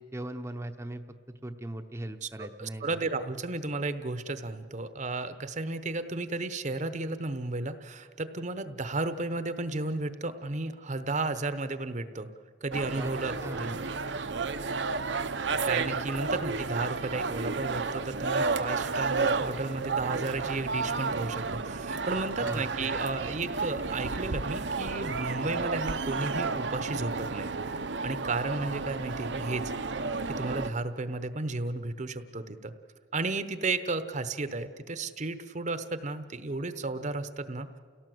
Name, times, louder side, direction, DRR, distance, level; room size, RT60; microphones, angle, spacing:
voice 1, 0.0-3.0 13.0-13.1 13.4-13.7 22.4-22.9, right 1 dB, 15° right, 5 dB, 0.8 m, -39 dB
voice 2, 2.2-12.3 12.6-13.3 13.6-13.8 15.6-27.5 28.0-29.6 30.3-32.7 33.1-37.8, right 3 dB, 40° right, 11 dB, 0.9 m, -33 dB
sound 1, 12.7-30.7, right 4 dB, 75° right, 0.9 m, -32 dB
30.0 x 17.0 x 7.8 m, 2.1 s
head